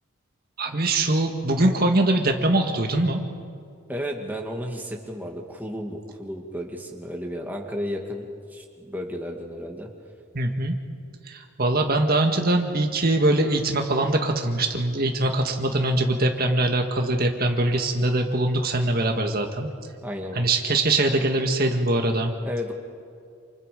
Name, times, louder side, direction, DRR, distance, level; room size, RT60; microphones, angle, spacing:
voice 1, 0.6-3.2 10.3-10.8 11.3-19.7 20.3-22.3, right 2 dB, 45° right, 3 dB, 1.8 m, -22 dB
voice 2, 3.9-8.3 8.5-9.9 20.0-20.4 22.4-22.7, equal, 10° right, 1 dB, 2.3 m, -33 dB
29.0 x 28.5 x 5.3 m, 2.4 s
head